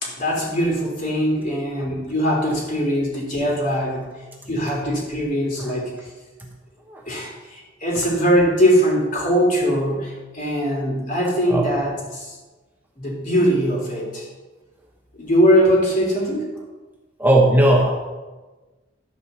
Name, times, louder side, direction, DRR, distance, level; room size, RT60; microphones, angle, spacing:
voice 1, 0.0-4.0 4.5-5.9 7.1-12.3 13.0-14.3 15.2-16.5, equal, 45° left, -2 dB, 3.3 m, -21 dB
voice 2, 17.2-17.9, right 1 dB, 10° right, -1 dB, 1.0 m, -17 dB
12.5 x 5.0 x 6.8 m, 1.2 s
head